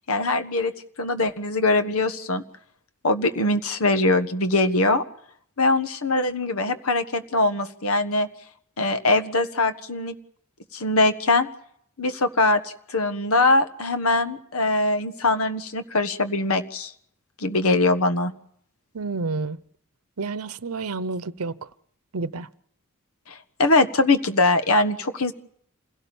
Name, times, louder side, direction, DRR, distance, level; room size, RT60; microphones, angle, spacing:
voice 1, 0.1-0.7 1.0-2.4 3.0-5.0 5.6-8.3 8.8-10.1 10.7-11.5 12.0-16.9 17.4-18.3 23.3-25.3, left 2 dB, 80° left, 1.5 m, -22 dB
voice 2, 18.9-19.6 20.2-21.7 22.1-22.5, right 3 dB, 90° right, 0.8 m, -29 dB
27.0 x 17.5 x 7.1 m
head